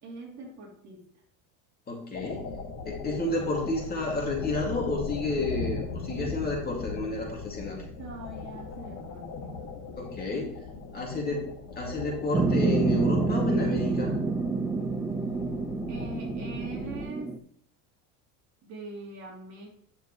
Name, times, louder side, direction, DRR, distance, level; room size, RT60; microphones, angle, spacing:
voice 1, 0.0-1.1 8.0-9.3 15.9-17.4 18.6-19.7, right 3 dB, 45° right, -2 dB, 3.3 m, -42 dB
voice 2, 1.9-2.4 2.9-7.8 10.0-10.6 10.9-11.5 11.8-14.2, left 2 dB, 25° left, -1 dB, 2.5 m, -31 dB
sound 1, 2.1-17.0, left 4 dB, 50° left, 3.2 m, -39 dB
sound 2, 12.3-17.4, right 4 dB, 5° right, 0.3 m, -28 dB
9.7 x 7.1 x 3.2 m, 0.62 s
cardioid pair, 135°, 39 cm